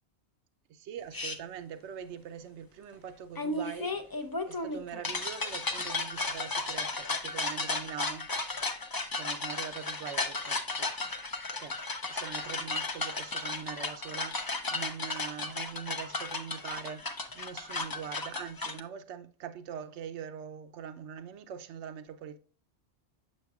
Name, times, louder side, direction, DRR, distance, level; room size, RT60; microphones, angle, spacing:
voice 1, 0.7-8.3 9.2-11.0 11.6-22.4, right 8 dB, 90° right, 0.9 m, -43 dB
sound 1, 1.1-1.4 3.4-18.8, left 3 dB, 30° left, 0.4 m, -34 dB
7.3 x 6.4 x 2.3 m
omnidirectional pair, 1.1 m